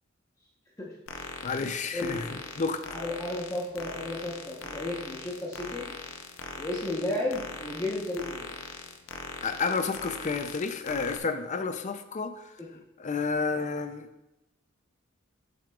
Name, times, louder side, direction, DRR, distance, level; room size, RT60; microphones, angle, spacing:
voice 1, 0.8-1.2 1.6-2.3 2.9-5.8 6.6-8.5, left 1 dB, 15° left, -5 dB, 1.0 m, -33 dB
sound 1, 1.1-11.2, left 4 dB, 75° left, 0.6 m, -41 dB
voice 2, 1.4-2.8 9.4-12.5 13.0-14.1, left 4 dB, 35° left, 9 dB, 0.5 m, -31 dB
7.9 x 7.5 x 2.4 m, 0.94 s
head